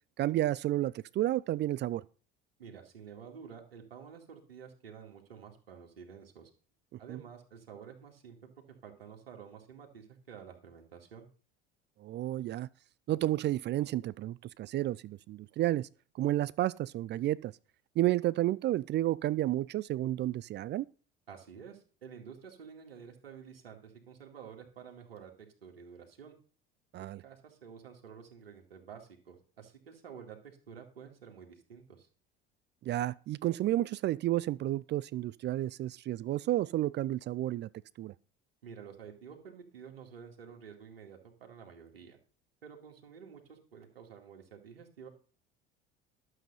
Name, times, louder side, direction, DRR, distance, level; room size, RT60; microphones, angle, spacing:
voice 1, 0.2-2.0 7.1-7.2 12.0-12.7 13.1-15.9 16.2-17.5 18.0-20.9 26.9-27.2 32.8-37.7 38.0-38.1, right 14 dB, 40° right, 0.4 m, -31 dB
voice 2, 2.6-6.5 7.0-11.3 21.3-26.3 27.0-32.1 38.6-42.2 42.6-45.1, right 7 dB, 85° right, 2.2 m, -50 dB
12.0 x 7.7 x 5.6 m
hypercardioid pair, 70°, 29 cm